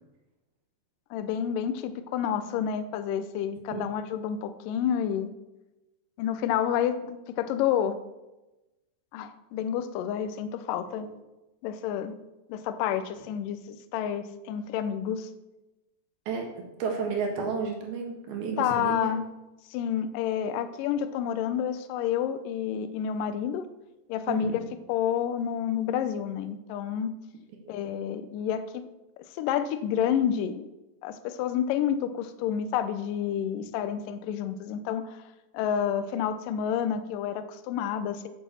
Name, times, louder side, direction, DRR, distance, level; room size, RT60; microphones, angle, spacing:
voice 1, 1.1-5.3 6.2-8.0 9.1-11.1 11.6-12.2 12.5-15.3 18.6-19.3 19.7-23.7 24.1-27.1 27.7-28.9 29.4-30.7 31.0-35.2 35.5-38.3, left 9 dB, 85° left, 10 dB, 1.9 m, -29 dB
voice 2, 16.3-19.1 24.3-24.6 27.6-27.7, right 5 dB, 70° right, 1 dB, 3.4 m, -32 dB
8.4 x 7.1 x 7.0 m, 1.0 s
omnidirectional pair, 4.8 m